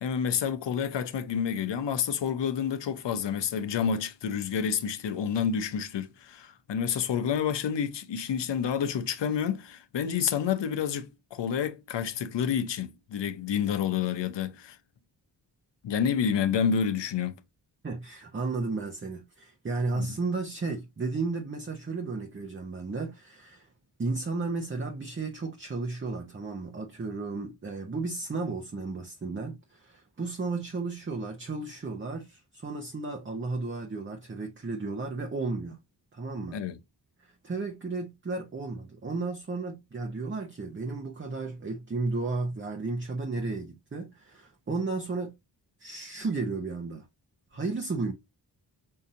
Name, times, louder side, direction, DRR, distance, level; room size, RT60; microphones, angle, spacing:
voice 1, 0.0-14.8 15.8-17.4 19.9-20.1 36.5-36.8, left 7 dB, 80° left, 0.7 m, -29 dB
voice 2, 17.8-23.7 24.0-35.8 36.1-36.6 37.4-45.4 45.8-47.1 47.5-48.1, right 3 dB, 30° right, 0.7 m, -33 dB
5.6 x 2.6 x 2.5 m
wide cardioid pair, 95°, 42 cm